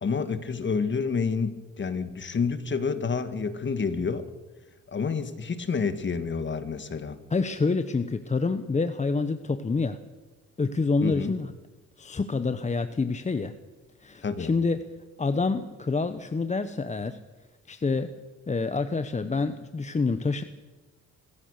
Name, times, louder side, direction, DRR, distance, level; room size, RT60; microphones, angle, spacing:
voice 1, 0.0-4.3 4.9-7.2 11.0-11.3 14.2-14.5, left 5 dB, 40° left, 10 dB, 2.1 m, -29 dB
voice 2, 7.3-10.0 10.6-11.5 12.0-13.5 14.0-14.8 15.2-17.2 17.7-18.2 18.5-20.4, left 4 dB, 25° left, 10 dB, 1.1 m, -27 dB
25.5 x 15.5 x 6.6 m, 1.2 s
cardioid pair, 90°, 30 cm